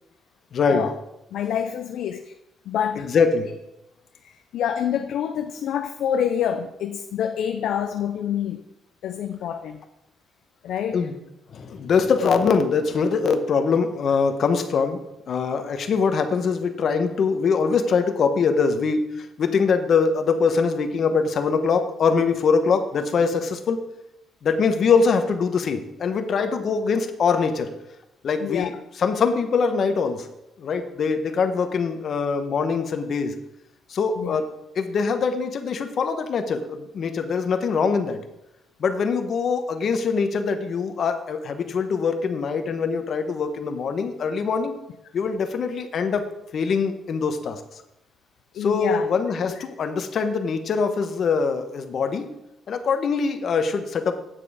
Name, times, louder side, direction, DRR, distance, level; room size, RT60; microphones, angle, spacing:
voice 1, 0.5-0.9 2.9-3.5 10.9-11.1 11.5-15.0 15.3-23.8 24.4-27.7 28.2-30.3 30.6-33.3 33.9-38.2 38.8-44.7 45.1-46.2 46.5-47.6 48.6-52.3 52.7-54.2, left 5 dB, 55° left, 7 dB, 1.1 m, -23 dB
voice 2, 1.3-2.3 2.7-3.1 4.2-8.6 9.0-9.8 10.6-11.1 28.4-28.7 34.2-34.4 48.5-49.1 49.5-49.6, left 9 dB, 75° left, 6 dB, 0.6 m, -27 dB
9.1 x 6.8 x 5.0 m, 0.89 s
cardioid pair, 90°, 0 cm